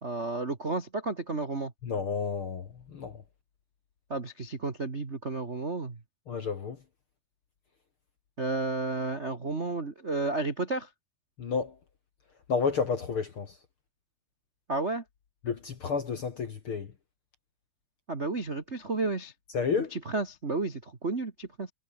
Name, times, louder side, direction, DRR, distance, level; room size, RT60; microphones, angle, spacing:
voice 1, 0.0-1.7 4.1-6.0 8.4-10.9 14.7-15.0 18.1-19.3 19.9-21.7, right 3 dB, 75° right, 0.6 m, -32 dB
voice 2, 1.8-3.2 6.3-6.8 11.4-11.8 12.5-13.6 15.4-16.9 19.5-20.0, left 5 dB, 50° left, 1.7 m, -31 dB
omnidirectional pair, 4.7 m